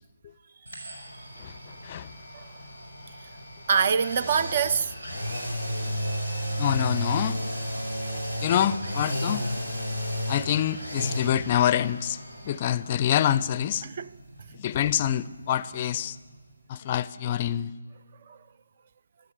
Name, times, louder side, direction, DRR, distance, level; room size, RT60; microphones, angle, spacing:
sound 1, 0.7-16.5 16.8-16.9, equal, 90° right, 5.2 m, -34 dB
voice 1, 1.4-2.1 5.8-5.9 6.6-7.4 8.4-9.5 10.3-12.2 12.4-13.8 14.5-16.2 16.7-17.7, left 10 dB, 30° left, 0.4 m, -26 dB
voice 2, 3.7-4.9 13.8-14.1 18.3-18.4, right 6 dB, 40° right, 0.3 m, -25 dB
14.0 x 13.0 x 6.6 m
figure-of-eight pair, 155°, 0 cm